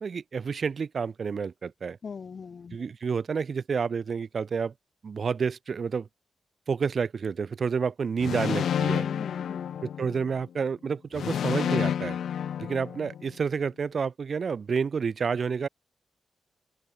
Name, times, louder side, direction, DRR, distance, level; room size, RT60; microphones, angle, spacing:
voice 1, 0.0-2.0 2.7-4.7 5.0-6.1 6.7-9.1 9.8-12.2 12.6-15.7, right 6 dB, 50° right, 0.5 m, -29 dB
voice 2, 2.0-2.8 8.9-9.7, left 5 dB, 50° left, 0.6 m, -40 dB
sound 1, 8.2-10.4 11.1-13.3, left 9 dB, 80° left, 1.2 m, -30 dB
open air
wide cardioid pair, 115°, 0 cm